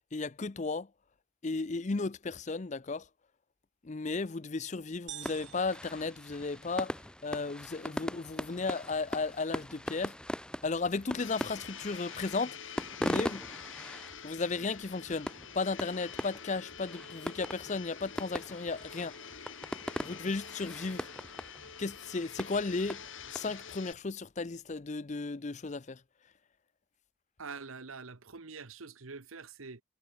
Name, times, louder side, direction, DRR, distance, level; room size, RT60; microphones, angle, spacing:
voice 1, 0.1-0.9 1.4-3.0 3.8-6.9 7.2-10.2 10.6-12.7 13.0-13.4 14.2-19.1 20.0-21.1 21.8-23.0 23.3-26.0, left 3 dB, 35° left, 0.5 m, -35 dB
sound 1, 5.1-7.0, right 12 dB, 60° right, 4.2 m, -49 dB
sound 2, 5.2-23.7, equal, 5° left, 1.9 m, -41 dB
Domestic sounds home sounds, 11.2-23.9, left 7 dB, 70° left, 2.7 m, -47 dB
voice 2, 27.4-29.8, right 4 dB, 85° right, 1.3 m, -45 dB
head